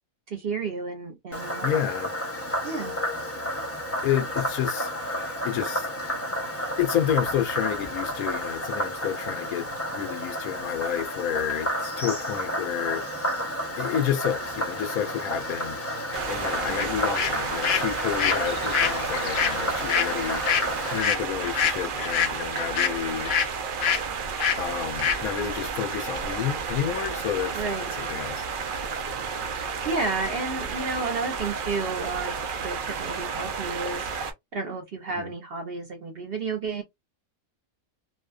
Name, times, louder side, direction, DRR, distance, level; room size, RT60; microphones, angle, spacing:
voice 1, 0.3-1.7 2.6-3.0 27.5-27.9 29.8-34.0 34.5-36.8, right 3 dB, 55° right, 0.7 m, -31 dB
Frog, 1.3-21.0, equal, 15° left, 0.4 m, -31 dB
voice 2, 1.6-2.1 4.0-5.9 6.5-9.7 9.9-13.0 13.8-15.8 16.3-20.4 20.9-23.3 24.6-27.6 28.0-28.5 35.1-35.3, left 10 dB, 85° left, 1.1 m, -30 dB
sound 1, 16.1-34.3, right 5 dB, 85° right, 0.4 m, -32 dB
sound 2, 16.8-16.9 17.1-23.5 23.8-24.0 24.4-24.6 25.0-25.2, left 8 dB, 70° left, 0.6 m, -26 dB
2.6 x 2.1 x 2.3 m
omnidirectional pair, 1.5 m